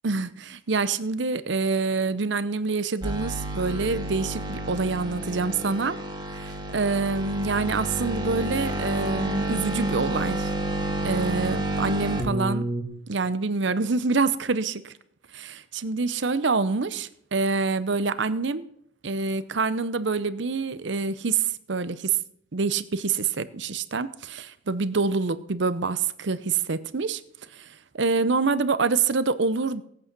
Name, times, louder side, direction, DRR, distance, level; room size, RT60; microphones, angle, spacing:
voice 1, 0.0-6.0 6.3-10.5 11.0-12.7 13.1-14.9 15.3-18.7 19.0-22.2 22.5-27.2 27.5-29.8, right 4 dB, 65° right, 14 dB, 0.8 m, -26 dB
sound 1, 3.0-12.8, right 1 dB, 25° right, 2.0 m, -30 dB
18.5 x 8.4 x 6.1 m, 0.70 s
head